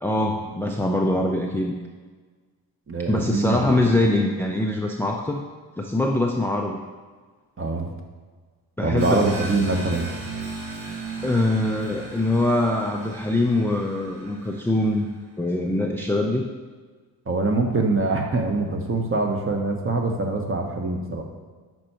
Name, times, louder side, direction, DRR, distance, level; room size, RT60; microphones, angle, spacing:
voice 1, 0.0-1.7 3.1-5.4 5.8-6.8 8.8-9.4 11.2-15.1 15.4-16.5, left 1 dB, 5° left, 1 dB, 0.6 m, -23 dB
voice 2, 2.9-3.6 3.9-4.0 7.6-7.9 8.8-10.1 17.3-21.2, right 3 dB, 25° right, 2 dB, 1.2 m, -24 dB
sound 1, 9.0-15.2, right 3 dB, 60° right, 1.6 m, -36 dB
6.1 x 4.4 x 4.4 m, 1.4 s
hypercardioid pair, 50°, 48 cm